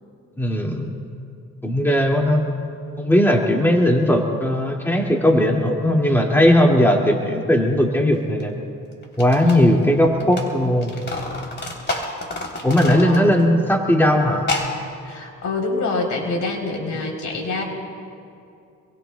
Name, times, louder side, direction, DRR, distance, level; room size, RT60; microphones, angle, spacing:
voice 1, 0.4-0.9 1.6-2.4 3.0-8.5 9.2-10.9 12.6-14.4, equal, 5° left, -1 dB, 2.2 m, -18 dB
sound 1, 8.4-8.5 9.0-10.5 10.7-13.5 13.7-13.8 14.4-14.7, left 2 dB, 35° left, 3.3 m, -29 dB
voice 2, 9.4-9.9 12.8-13.4 15.0-17.6, left 3 dB, 70° left, 0 dB, 3.5 m, -25 dB
27.5 x 23.0 x 2.2 m, 2.5 s
cardioid pair, 90°, 30 cm